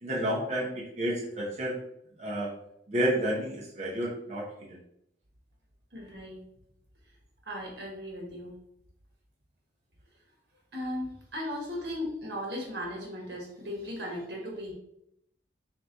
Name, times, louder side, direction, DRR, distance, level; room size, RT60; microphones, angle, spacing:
voice 1, 0.0-1.8 2.2-2.5 2.9-4.8, equal, 40° right, -4 dB, 0.9 m, -30 dB
voice 2, 5.9-6.4 7.4-8.5 10.7-14.7, left 1 dB, 70° right, -1 dB, 1.4 m, -37 dB
3.5 x 3.0 x 3.9 m, 0.76 s
head